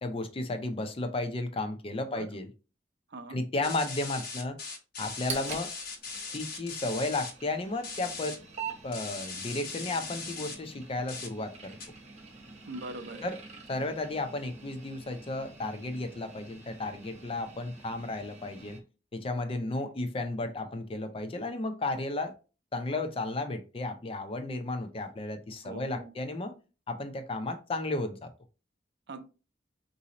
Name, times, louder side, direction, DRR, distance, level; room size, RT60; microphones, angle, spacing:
voice 1, 0.0-2.5 3.3-4.6 5.0-5.7 6.3-8.4 8.8-11.8 13.2-13.4 13.7-18.8 19.1-22.3 22.7-26.5 26.9-28.3, left 2 dB, 30° left, 0.5 m, -33 dB
voice 2, 2.1-2.4 3.1-3.4 12.6-13.3 25.6-26.1 29.1-29.2, right 2 dB, 65° right, 0.6 m, -42 dB
sound 1, 3.6-7.3 7.8-8.3 8.9-10.5 11.1-11.3 11.8-11.9, left 4 dB, 55° left, 1.1 m, -39 dB
sound 2, 5.0-18.8, right 5 dB, 40° right, 0.9 m, -46 dB
4.0 x 2.7 x 2.8 m
head